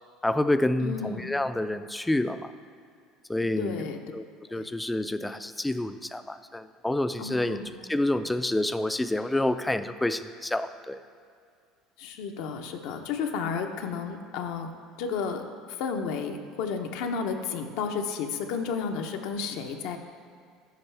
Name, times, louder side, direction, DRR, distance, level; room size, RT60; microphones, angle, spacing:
voice 1, 0.2-2.5 3.3-3.9 4.1-4.2 4.5-7.6 7.9-11.0, left 1 dB, 10° left, 11 dB, 0.3 m, -28 dB
voice 2, 0.8-1.3 3.6-4.0 4.5-4.7 7.2-7.9 12.0-14.7 15.0-15.4 15.8-20.0, left 5 dB, 75° left, 5 dB, 0.7 m, -32 dB
12.5 x 5.3 x 3.4 m, 2.2 s
supercardioid pair, 100°, 0 cm